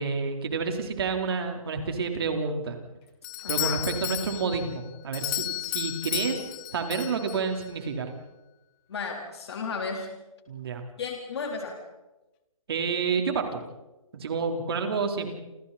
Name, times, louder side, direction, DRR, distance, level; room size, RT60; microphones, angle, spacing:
voice 1, 0.0-2.8 3.5-6.4 6.7-8.1 10.5-10.8 12.7-13.6 14.1-15.3, right 5 dB, 45° right, 4 dB, 4.0 m, -29 dB
Doorbell, 3.2-7.7, left 18 dB, 15° left, 0.7 m, -33 dB
voice 2, 3.4-3.9 8.9-10.1 11.0-11.8, left 5 dB, 45° left, 2 dB, 3.9 m, -34 dB
29.0 x 28.5 x 4.3 m, 1.0 s
hypercardioid pair, 160°, 18 cm